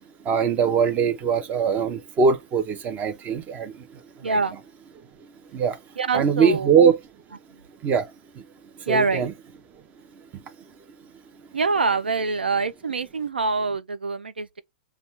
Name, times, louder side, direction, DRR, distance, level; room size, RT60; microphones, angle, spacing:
voice 1, 0.2-3.9 4.2-4.4 5.5-5.8 6.1-7.0 7.8-8.1 8.3-8.4 8.9-9.3, right 6 dB, 30° right, 0.9 m, -21 dB
voice 2, 4.2-4.6 6.0-6.7 7.5-7.6 8.9-9.3 11.5-14.6, right 4 dB, 90° right, 0.4 m, -25 dB
6.8 x 2.4 x 3.2 m
hypercardioid pair, 115°, 5 cm